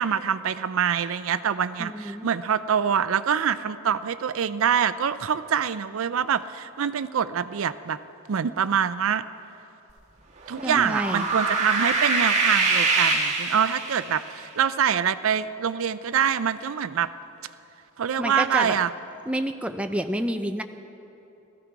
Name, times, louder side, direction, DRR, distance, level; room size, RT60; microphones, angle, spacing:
voice 1, 0.0-8.0 8.3-9.2 10.5-17.1 18.0-18.9, right 8 dB, 65° right, 14 dB, 0.4 m, -25 dB
voice 2, 1.8-2.3 10.6-11.3 18.2-18.8 19.3-20.6, equal, 5° right, 7 dB, 0.4 m, -29 dB
sound 1, 10.5-14.2, right 3 dB, 35° right, 1.6 m, -24 dB
16.0 x 14.0 x 4.7 m, 2.9 s
head